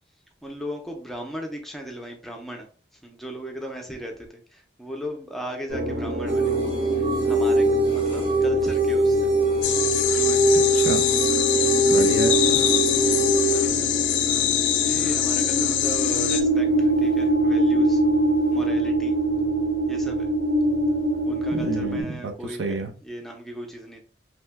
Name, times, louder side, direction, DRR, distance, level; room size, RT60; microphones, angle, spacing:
voice 1, 0.4-2.7 3.0-4.1 4.8-6.5 7.3-9.3 9.9-10.6 11.6-11.8 13.4-14.0 14.8-18.0 18.5-19.1 19.9-20.3 21.3-24.0, equal, ahead, 2 dB, 0.5 m, -37 dB
sound 1, 5.7-22.0, right 1 dB, 60° right, 1.0 m, -25 dB
sound 2, 6.3-13.6, right 2 dB, 25° right, 0.7 m, -22 dB
sound 3, 9.6-16.4, left 11 dB, 80° left, 0.3 m, -24 dB
voice 2, 10.6-11.0 11.9-12.6 21.5-22.9, right 3 dB, 90° right, 5 dB, 0.6 m, -30 dB
2.8 x 2.1 x 3.3 m, 0.39 s
head